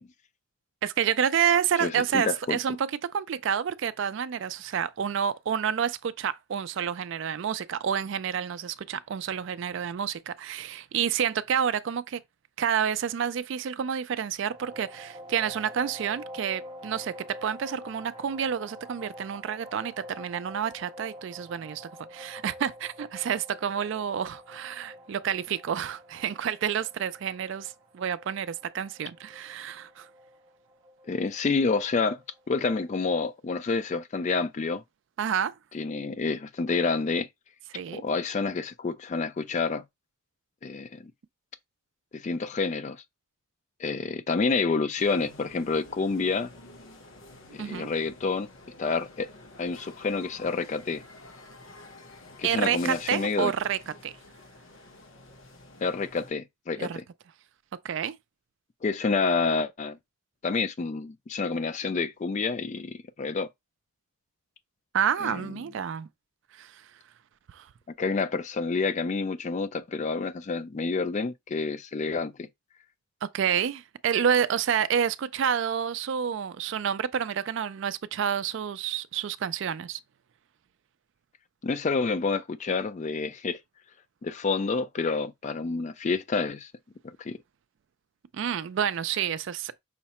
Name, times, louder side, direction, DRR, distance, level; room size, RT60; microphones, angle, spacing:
voice 1, 0.8-12.2 12.6-30.1 35.2-35.6 37.7-38.0 47.5-47.9 52.4-54.1 56.8-57.0 57.8-58.2 64.9-66.1 66.5-66.9 67.5-67.7 73.2-80.0 88.3-89.8, right 8 dB, 60° right, 0.3 m, -29 dB
voice 2, 1.8-2.6 31.1-32.2 32.5-34.8 35.7-37.3 37.9-39.8 40.6-41.0 42.1-43.0 43.8-46.5 47.5-48.5 48.8-49.3 49.6-51.0 52.4-53.5 55.8-57.0 58.8-60.0 60.4-63.5 65.2-65.4 68.0-72.5 81.6-83.6 84.2-86.7 87.2-87.4, left 4 dB, 35° left, 0.3 m, -28 dB
sound 1, 14.5-33.1, equal, 25° right, 0.7 m, -47 dB
sound 2, 45.0-56.3, left 2 dB, 70° left, 1.0 m, -49 dB
5.6 x 2.0 x 4.2 m
head